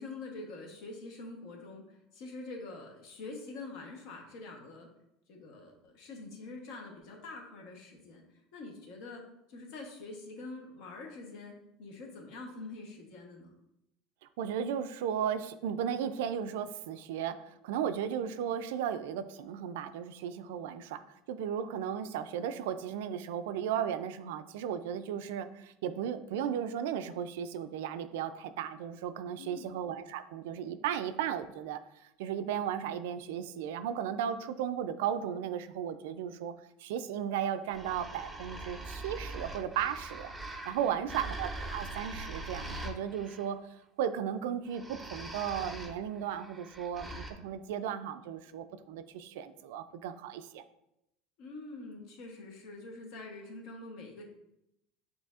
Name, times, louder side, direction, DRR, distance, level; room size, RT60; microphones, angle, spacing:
voice 1, 0.0-1.8 2.1-4.9 5.3-8.2 8.5-9.2 9.5-11.5 11.8-13.5 29.4-29.7 40.7-41.2 51.4-54.2, left 3 dB, 60° left, 1 dB, 0.9 m, -45 dB
voice 2, 14.4-21.0 21.3-36.5 36.8-40.3 40.7-43.6 44.0-50.6, right 9 dB, 90° right, 11 dB, 0.3 m, -35 dB
Zombie groans, 37.7-43.5 44.7-47.3, right 2 dB, 5° right, 0.4 m, -42 dB
6.6 x 2.7 x 2.4 m, 0.83 s
cardioid pair, 145°, 0 cm